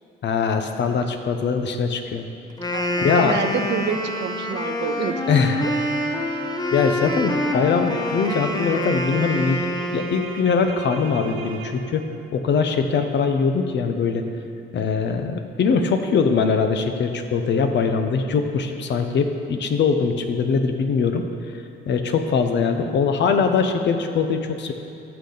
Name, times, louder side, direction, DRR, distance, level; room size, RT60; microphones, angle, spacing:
voice 1, 0.2-2.2 3.0-3.4 5.3-5.6 6.7-12.1 12.3-14.2 14.7-21.3 21.8-24.7, left 5 dB, 65° left, 6 dB, 0.9 m, -22 dB
Wind instrument woodwind instrument, 2.5-10.5, left 1 dB, 20° left, 0.9 m, -26 dB
voice 2, 2.7-5.3 5.6-5.7, right 7 dB, 60° right, 8 dB, 0.6 m, -28 dB
sound 1, 4.8-12.1, right 3 dB, 85° right, 1.1 m, -36 dB
14.0 x 6.8 x 4.0 m, 2.7 s
cardioid pair, 90°, 20 cm